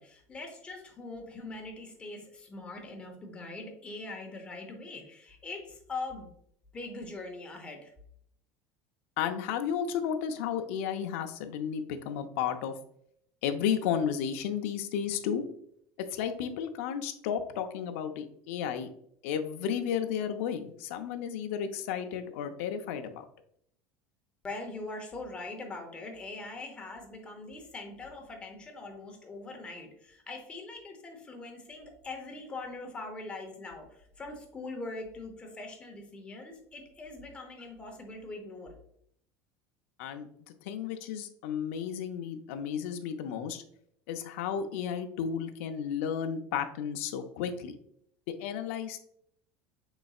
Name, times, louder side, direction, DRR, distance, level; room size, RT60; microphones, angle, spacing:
voice 1, 0.0-6.3 6.7-7.9 24.4-38.7, left 2 dB, 15° left, 3 dB, 0.8 m, -42 dB
voice 2, 9.2-12.7 13.4-15.4 16.1-18.9 19.2-23.2 40.0-40.3 40.6-43.6 44.1-47.7 48.3-49.0, left 8 dB, 80° left, 6 dB, 0.6 m, -33 dB
5.2 x 3.9 x 2.3 m, 0.69 s
cardioid pair, 165°, 7 cm